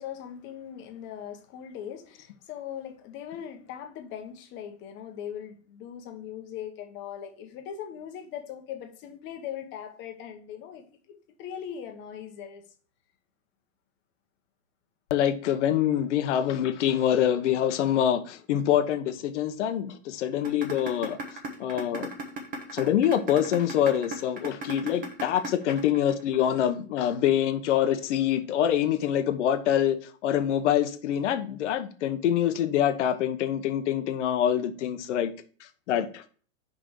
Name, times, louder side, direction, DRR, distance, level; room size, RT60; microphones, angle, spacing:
voice 1, 0.0-12.6, left 9 dB, 30° left, 1.2 m, -40 dB
voice 2, 15.1-21.2 21.6-22.1 22.7-30.0 30.2-35.3 35.9-36.2, left 10 dB, 60° left, 1.1 m, -25 dB
sound 1, 20.4-26.5, right 4 dB, 20° right, 1.2 m, -35 dB
5.4 x 5.1 x 6.3 m
supercardioid pair, 155°, 40 cm